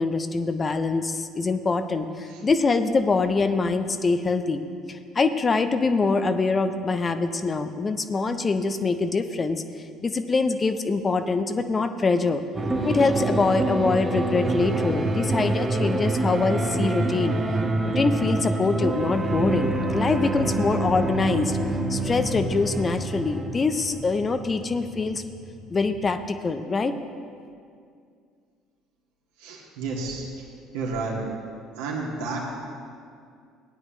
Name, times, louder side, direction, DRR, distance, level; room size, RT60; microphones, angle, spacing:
voice 1, 0.0-4.6 4.9-9.6 10.0-12.4 12.8-17.4 17.9-21.6 21.9-25.2 25.7-27.0, left 4 dB, 30° left, 9 dB, 0.6 m, -24 dB
sound 1, 12.5-26.2, right 2 dB, 25° right, 1.2 m, -27 dB
voice 2, 29.4-30.3 30.7-31.2 31.8-32.4, right 3 dB, 70° right, -3 dB, 2.1 m, -31 dB
17.0 x 9.8 x 3.1 m, 2.3 s
figure-of-eight pair, 55°, 0 cm